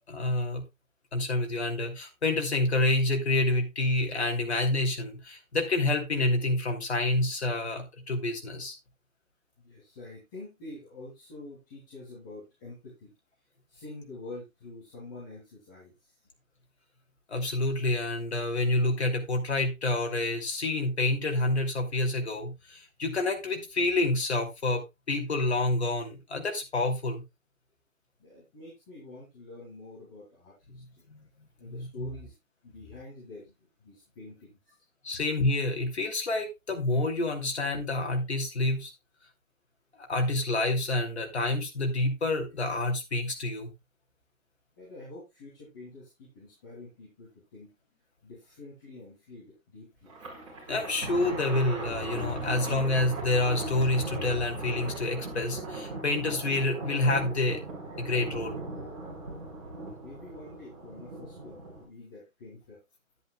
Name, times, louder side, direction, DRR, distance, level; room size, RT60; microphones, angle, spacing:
voice 1, 0.1-0.6 1.1-8.7 17.3-27.2 31.1-31.3 31.7-32.1 35.0-38.9 40.0-43.7 50.7-57.6 58.0-58.6, left 2 dB, 50° left, 3 dB, 2.9 m, -28 dB
voice 2, 9.6-13.1 13.7-16.2 28.2-31.0 31.6-32.3 32.6-34.6 44.8-47.7 48.2-50.1 57.9-58.1 60.0-62.8, left 2 dB, 15° left, -8 dB, 2.9 m, -47 dB
Thunder, 50.1-61.8, right 2 dB, 25° right, 5.0 m, -38 dB
11.0 x 10.5 x 2.4 m, 0.22 s
hypercardioid pair, 170°, 41 cm